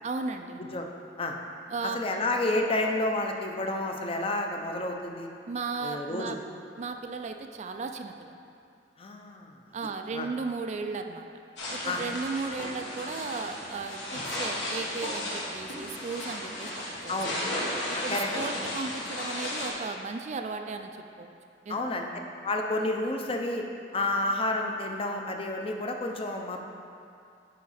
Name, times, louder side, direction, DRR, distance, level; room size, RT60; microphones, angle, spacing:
voice 1, 0.0-0.6 1.7-2.0 5.5-6.4 6.8-8.4 9.7-11.3 11.7-17.2 17.9-21.3 21.7-21.8, right 4 dB, 40° right, 6 dB, 0.4 m, -35 dB
voice 2, 0.6-0.9 1.2-1.4 1.8-5.3 5.8-6.4 9.0-9.6 10.1-10.3 11.9-12.0 17.1-17.3 18.1-18.3 21.7-22.1 22.4-23.6 23.9-26.6, left 2 dB, 30° left, 3 dB, 0.6 m, -30 dB
sound 1, 11.6-19.7, left 1 dB, 80° left, 1.6 m, -34 dB
9.3 x 4.8 x 4.2 m, 2.5 s
head